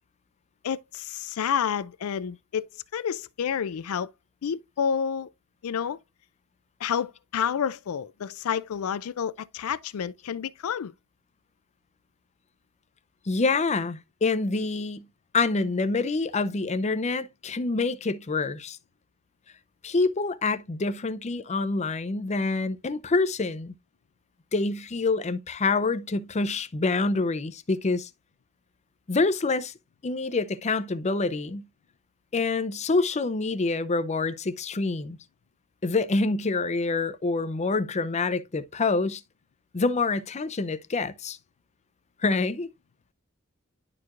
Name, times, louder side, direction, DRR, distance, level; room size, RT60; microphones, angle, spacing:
voice 1, 0.6-4.1 4.4-5.3 5.6-6.0 6.8-10.9, left 7 dB, 80° left, 0.4 m, -29 dB
voice 2, 13.3-15.0 15.3-18.8 19.8-23.7 24.5-28.1 29.1-29.7 30.0-31.6 32.3-35.2 35.8-39.2 39.7-41.4 42.2-42.7, left 3 dB, 30° left, 0.5 m, -26 dB
11.0 x 4.6 x 2.4 m
head